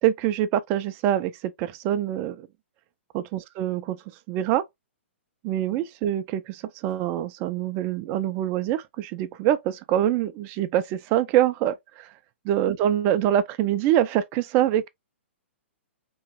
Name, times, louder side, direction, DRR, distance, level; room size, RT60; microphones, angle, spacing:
voice 1, 0.0-2.5 3.1-4.0 4.3-4.6 5.4-12.1 12.4-14.9, right 11 dB, 30° right, 0.5 m, -25 dB
4.4 x 3.1 x 2.9 m
figure-of-eight pair, 115°, 7 cm